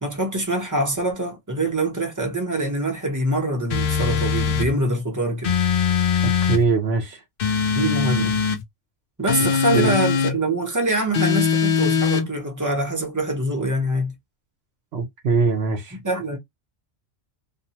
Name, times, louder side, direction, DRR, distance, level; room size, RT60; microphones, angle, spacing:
voice 1, 0.0-5.5 7.7-8.4 9.2-14.1 16.0-16.4, right 1 dB, 20° right, 0.6 m, -24 dB
sound 1, 3.7-4.7 5.4-6.6 7.4-8.6 9.3-10.4 11.1-12.3, left 6 dB, 60° left, 0.7 m, -21 dB
voice 2, 6.4-7.2 9.7-9.9 14.9-16.0, right 4 dB, 65° right, 0.9 m, -22 dB
2.6 x 2.1 x 2.7 m
omnidirectional pair, 1.2 m